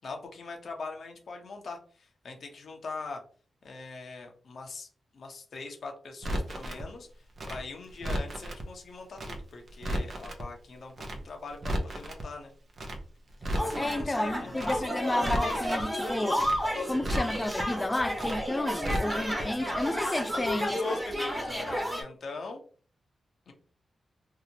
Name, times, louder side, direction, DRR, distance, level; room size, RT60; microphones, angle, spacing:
voice 1, 0.0-3.2 3.6-4.9 5.1-7.1 7.5-12.5 13.6-15.0 20.3-22.6 23.5-23.6, left 3 dB, 65° left, 0.8 m, -42 dB
Crackle, 6.2-6.8 7.4-8.6 9.2-9.4 9.7-10.4 11.0-11.2 11.5-12.2 12.8-13.0 13.3-14.0 14.6-14.8 15.1-15.8 16.4-16.6 16.9-17.6 18.2-18.4 18.7-19.4 19.7-19.8, equal, 55° right, 0.6 m, -34 dB
sound 1, 13.6-22.0, equal, 15° right, 1.1 m, -31 dB
voice 2, 13.8-16.5 16.9-20.8, left 1 dB, 20° left, 0.4 m, -31 dB
2.8 x 2.0 x 2.7 m
cardioid pair, 55°, 0 cm